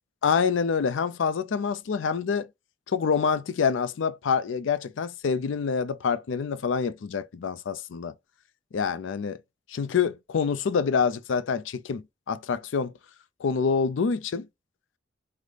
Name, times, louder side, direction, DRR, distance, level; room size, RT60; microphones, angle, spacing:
voice 1, 0.2-2.5 2.9-8.1 8.7-9.4 9.7-12.9 13.4-14.5, left 6 dB, 90° left, 0.4 m, -26 dB
4.8 x 2.1 x 3.9 m
head